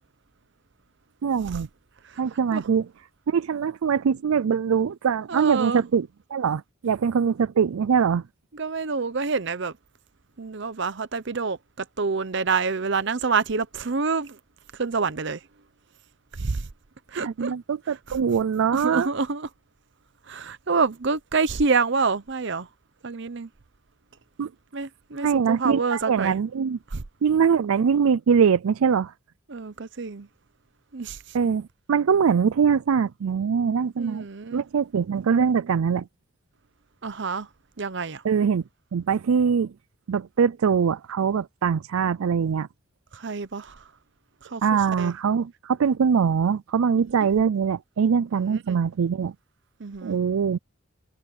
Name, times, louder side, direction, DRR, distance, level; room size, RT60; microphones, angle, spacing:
voice 1, 1.2-1.7 2.2-2.9 3.3-8.2 17.2-19.1 24.4-24.5 25.1-26.8 27.2-29.1 31.3-34.3 34.5-36.1 38.2-38.6 38.9-39.7 40.1-42.7 44.6-49.3 50.0-50.6, right 6 dB, 85° right, 0.4 m, -23 dB
voice 2, 5.3-5.8 8.5-9.8 10.4-14.4 14.7-15.5 16.3-16.7 17.1-17.5 17.9-18.2 18.7-19.5 20.2-22.7 23.0-23.5 24.7-26.4 26.9-27.0 29.5-30.3 30.9-31.4 34.0-34.6 37.0-37.5 37.8-38.2 43.1-43.9 44.4-45.1 48.3-48.8 49.8-50.2, right 4 dB, 60° right, 0.7 m, -27 dB
head